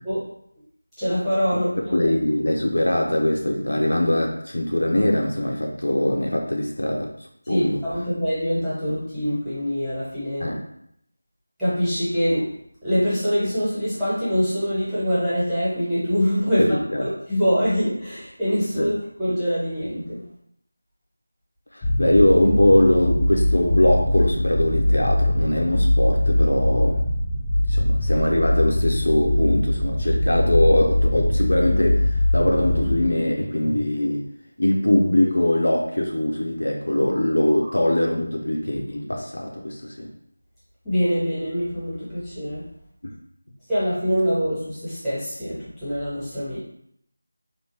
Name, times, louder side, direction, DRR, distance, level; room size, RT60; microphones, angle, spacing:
voice 1, 1.0-1.7 7.4-10.5 11.6-12.5 12.8-16.6 17.0-18.9 19.2-20.2 37.6-37.7 40.8-42.6 43.7-46.6, equal, ahead, -13 dB, 1.2 m, -24 dB
voice 2, 1.9-7.1 7.5-7.8 10.4-10.6 16.6-17.1 18.8-18.9 21.7-27.0 27.7-34.2 34.6-40.1 43.0-43.2, left 1 dB, 70° left, 1 dB, 0.5 m, -22 dB
sound 1, 21.8-33.1, left 1 dB, 15° left, 0.4 m, -22 dB
3.4 x 2.5 x 3.2 m, 0.71 s
figure-of-eight pair, 165°, 0 cm